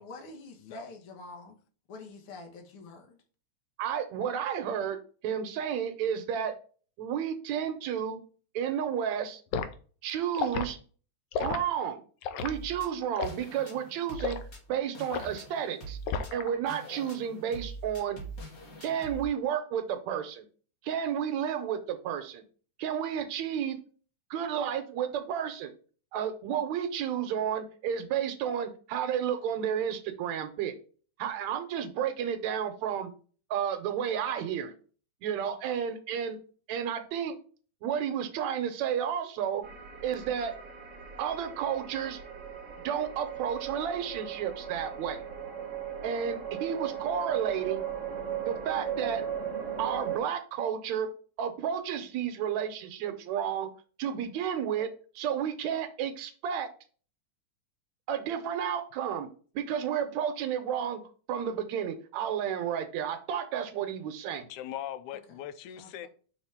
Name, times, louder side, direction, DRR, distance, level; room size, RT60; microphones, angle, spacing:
voice 1, 0.0-1.6 1.9-3.2 65.3-65.5 65.8-66.1, left 2 dB, 55° left, 2.1 m, -46 dB
voice 2, 3.8-5.0 5.2-6.5 7.0-8.2 8.5-9.4 10.0-10.8 11.4-12.0 12.4-14.4 14.7-16.0 16.3-18.2 18.8-20.4 20.8-22.4 22.8-23.8 24.3-25.7 26.1-30.7 31.2-33.1 33.5-34.7 35.2-36.4 36.7-37.4 37.8-39.6 40.0-40.5 41.2-42.2 42.8-45.2 46.0-47.9 48.5-49.3 49.8-51.1 51.4-53.7 54.0-54.9 55.2-56.7 58.1-59.3 59.6-61.0 61.3-64.5, right 8 dB, 75° right, 2.0 m, -31 dB
Liquid, 9.5-9.7 10.3-10.7 11.3-11.6 12.2-12.5 13.2-13.4 14.2-14.4 15.1-15.4 16.1-16.5 16.8-17.1, left 6 dB, 75° left, 1.6 m, -32 dB
sound 1, 12.4-19.2, right 3 dB, 35° left, 1.8 m, -44 dB
sound 2, 39.6-50.2, right 8 dB, 60° right, 0.8 m, -37 dB
voice 3, 64.5-66.1, left 11 dB, 90° left, 2.1 m, -40 dB
5.7 x 4.0 x 5.6 m
omnidirectional pair, 3.4 m